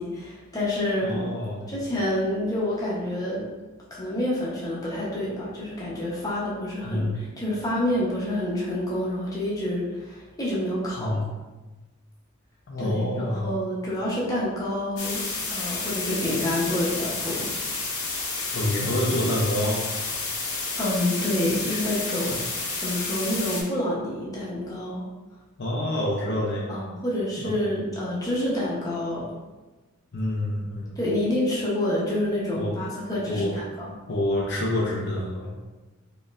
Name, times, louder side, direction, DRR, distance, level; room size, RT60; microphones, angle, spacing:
voice 1, 0.0-1.3 1.7-3.5 3.9-11.2 12.8-15.2 15.5-17.5 20.8-22.4 22.8-25.1 26.7-29.3 31.0-34.0, left 1 dB, 15° left, -7 dB, 0.9 m, -28 dB
voice 2, 1.0-1.7 6.8-7.1 11.0-11.3 12.7-13.5 18.5-19.8 22.3-22.4 25.6-26.8 27.4-27.8 30.1-31.0 32.6-32.8 33.3-33.6 34.1-35.7, left 1 dB, 55° left, -3 dB, 0.6 m, -27 dB
sound 1, 15.0-23.6, left 3 dB, 90° left, 0.9 m, -30 dB
4.1 x 3.0 x 2.5 m, 1.2 s
head